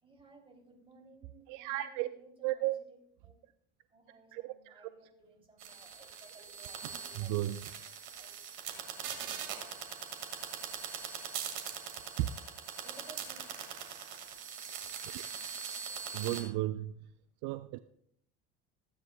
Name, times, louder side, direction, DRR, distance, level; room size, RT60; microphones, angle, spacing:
voice 1, 0.0-2.7 3.2-3.4 3.9-7.6 7.8-8.7 12.8-13.4, right 3 dB, 15° right, 2 dB, 3.0 m, -58 dB
voice 2, 1.5-2.1 2.4-2.7 4.3-4.9 7.1-7.7 12.2-12.3 15.0-15.2 16.1-16.9 17.4-17.8, right 16 dB, 60° right, 13 dB, 0.5 m, -34 dB
sound 1, 5.6-16.4, right 7 dB, 85° right, 2.2 m, -42 dB
16.0 x 9.6 x 2.3 m, 0.72 s
supercardioid pair, 100°, 34 cm